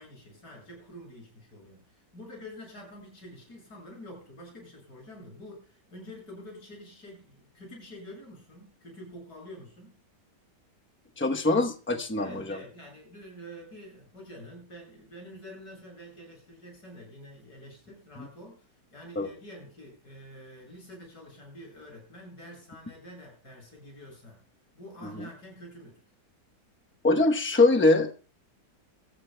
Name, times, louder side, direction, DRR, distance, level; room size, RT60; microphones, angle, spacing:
voice 1, 0.0-10.0 12.2-24.4 24.7-26.0, equal, 65° left, -1 dB, 7.8 m, -47 dB
voice 2, 11.2-12.6 18.2-18.3 19.2-19.3 27.0-28.1, left 2 dB, 10° left, 5 dB, 0.6 m, -23 dB
24.0 x 14.0 x 2.2 m, 0.37 s
omnidirectional pair, 1.8 m